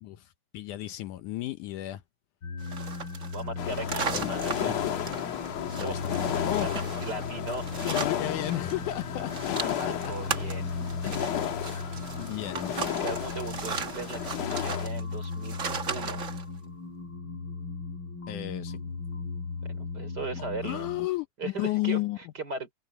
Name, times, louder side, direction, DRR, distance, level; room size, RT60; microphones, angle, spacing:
voice 1, 0.0-2.0 4.1-4.3 5.7-6.8 7.8-9.6 10.0-10.1 11.0-11.8 12.2-12.7 18.3-18.8 20.4-22.2, left 15 dB, 75° left, 2.2 m, -33 dB
sound 1, 2.4-21.1, left 4 dB, 40° left, 3.9 m, -37 dB
sound 2, 2.6-8.7 9.0-16.5, right 5 dB, 50° right, 0.9 m, -37 dB
voice 2, 3.3-4.8 5.8-6.0 6.6-7.7 9.5-10.8 12.9-15.6 15.9-16.2 19.8-20.9 21.4-22.7, right 3 dB, 30° right, 5.0 m, -38 dB
sound 3, 3.6-14.9, left 10 dB, 60° left, 2.4 m, -33 dB
omnidirectional pair, 3.7 m